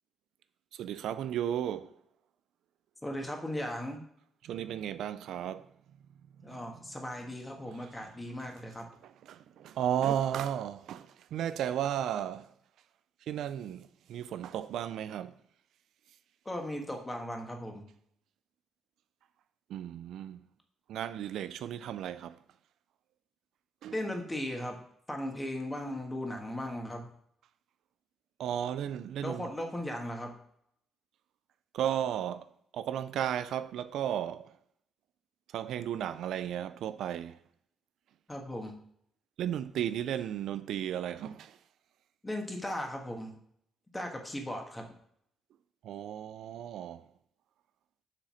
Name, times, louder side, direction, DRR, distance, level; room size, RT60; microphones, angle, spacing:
voice 1, 0.7-2.0 4.4-5.7 6.5-6.6 7.8-8.0 9.0-12.5 13.2-15.4 19.7-20.4 20.9-22.4 23.8-24.0 28.4-29.5 31.7-34.5 35.5-37.4 39.4-41.6 45.8-47.1, right 10 dB, 75° right, 0.3 m, -34 dB
voice 2, 3.0-4.0 6.4-8.9 16.4-17.9 23.9-24.8 25.1-27.1 29.2-30.3 38.3-38.7 42.2-43.4 43.9-44.9, left 1 dB, 15° left, 1.6 m, -37 dB
7.3 x 3.9 x 6.2 m
cardioid pair, 90°, 0 cm